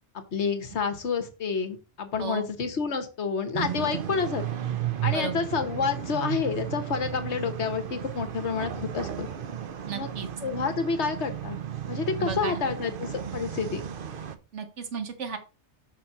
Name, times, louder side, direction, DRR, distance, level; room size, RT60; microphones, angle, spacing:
voice 1, 0.1-4.4 5.0-9.3 9.9-10.1 10.4-11.6 11.9-13.8, left 5 dB, 75° left, 8 dB, 1.5 m, -29 dB
sound 1, 3.5-14.4, right 10 dB, 55° right, 0.9 m, -34 dB
voice 2, 5.1-5.5 9.8-10.3 12.2-12.6 14.5-15.4, right 5 dB, 85° right, 8 dB, 1.5 m, -34 dB
5.8 x 4.1 x 5.9 m, 0.31 s
omnidirectional pair, 1.2 m